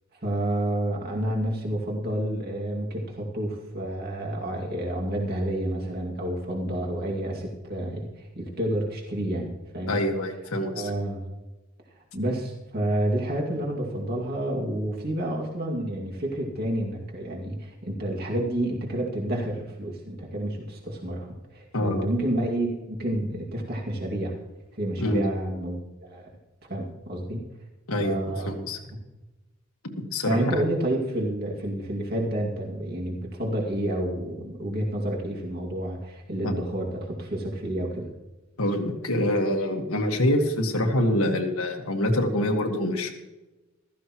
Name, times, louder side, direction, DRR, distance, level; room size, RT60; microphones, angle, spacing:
voice 1, 0.2-10.0 10.7-11.3 12.1-24.4 24.7-26.3 26.7-27.5 28.0-28.6 30.2-38.1, right 1 dB, 45° right, -1 dB, 2.3 m, -29 dB
voice 2, 9.9-10.9 21.7-22.1 25.0-25.2 27.9-28.8 30.0-30.5 36.4-36.5 38.6-43.1, left 1 dB, 90° left, 2 dB, 1.7 m, -25 dB
15.0 x 14.0 x 3.1 m, 1.1 s
head